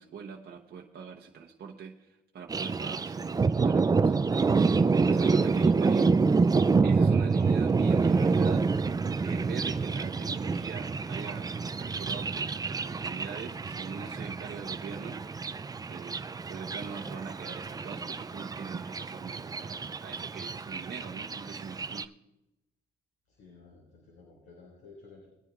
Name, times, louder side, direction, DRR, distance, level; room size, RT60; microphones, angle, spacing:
voice 1, 0.0-6.2 6.8-8.7 9.2-15.6 15.9-22.1, right 6 dB, 55° right, 1 dB, 1.0 m, -43 dB
Thunder, 2.5-22.0, right 4 dB, 20° right, 0.4 m, -27 dB
voice 2, 23.3-25.3, left 4 dB, 80° left, -4 dB, 4.9 m, -53 dB
20.5 x 9.9 x 2.5 m, 0.95 s
cardioid pair, 90°, 20 cm